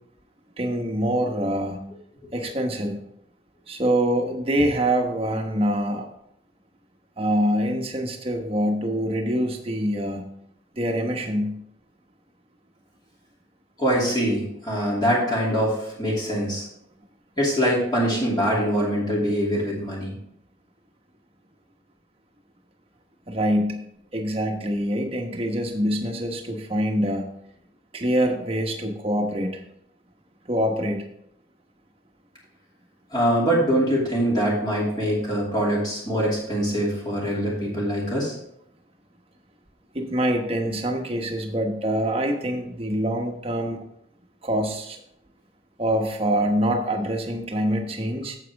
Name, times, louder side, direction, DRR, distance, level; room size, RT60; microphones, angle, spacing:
voice 1, 0.6-1.8 2.3-3.0 3.7-6.1 7.2-10.2 10.7-11.6 23.3-23.8 24.1-27.2 27.9-29.6 30.5-31.0 39.9-43.8 44.4-45.0 45.8-48.4, equal, 30° right, 3 dB, 1.2 m, -25 dB
voice 2, 13.8-16.7 17.4-20.1 33.1-38.3, equal, 25° left, -5 dB, 2.6 m, -23 dB
9.2 x 7.6 x 3.5 m, 0.73 s
head